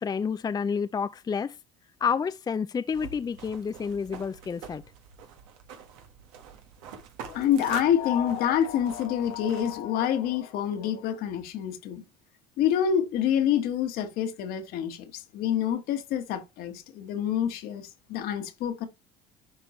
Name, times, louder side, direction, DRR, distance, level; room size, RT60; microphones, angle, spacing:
voice 1, 0.0-1.6 2.0-4.8, left 6 dB, 25° left, 0.5 m, -29 dB
sound 1, 2.9-9.8, right 7 dB, 80° right, 1.6 m, -46 dB
voice 2, 7.3-12.0 12.6-18.9, left 9 dB, 65° left, 1.6 m, -27 dB
11.0 x 3.8 x 3.2 m
supercardioid pair, 80°, 17 cm